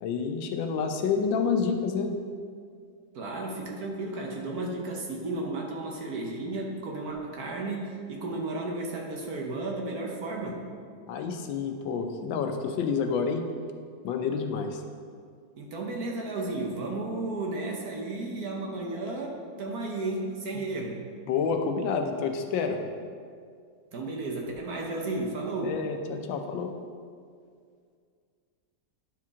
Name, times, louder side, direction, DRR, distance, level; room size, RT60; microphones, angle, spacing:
voice 1, 0.0-2.1 11.1-13.4 14.0-14.8 21.3-22.8 25.6-26.7, left 5 dB, 80° left, 5 dB, 1.4 m, -28 dB
voice 2, 3.1-10.6 15.6-21.0 23.9-25.8, right 2 dB, 60° right, -1 dB, 1.3 m, -33 dB
11.5 x 4.5 x 3.6 m, 2.1 s
omnidirectional pair, 2.1 m